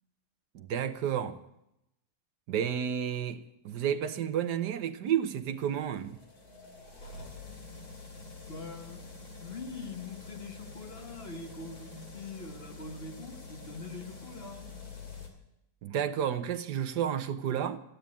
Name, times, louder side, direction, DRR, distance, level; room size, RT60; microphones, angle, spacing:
voice 1, 0.5-1.4 2.5-6.2 15.8-17.8, right 9 dB, 80° right, 1.5 m, -31 dB
sound 1, 5.0-15.3, left 3 dB, 60° left, 3.2 m, -47 dB
voice 2, 8.5-9.1 9.4-14.7, left 4 dB, 40° left, 1.3 m, -43 dB
15.0 x 9.1 x 8.4 m
omnidirectional pair, 1.8 m